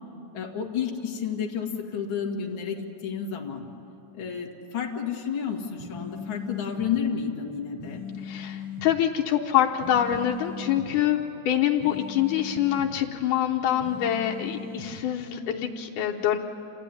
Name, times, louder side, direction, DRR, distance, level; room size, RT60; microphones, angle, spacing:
voice 1, 0.3-3.6 4.1-8.0, left 7 dB, 45° left, -1 dB, 2.5 m, -31 dB
sound 1, 5.8-6.9 7.8-8.9 9.8-10.9 11.8-12.9 13.8-14.9, left 6 dB, 55° right, 4.2 m, -39 dB
voice 2, 8.2-11.2 11.5-16.4, left 10 dB, 90° left, -1 dB, 2.5 m, -25 dB
28.0 x 15.0 x 9.9 m, 2.8 s
omnidirectional pair, 3.6 m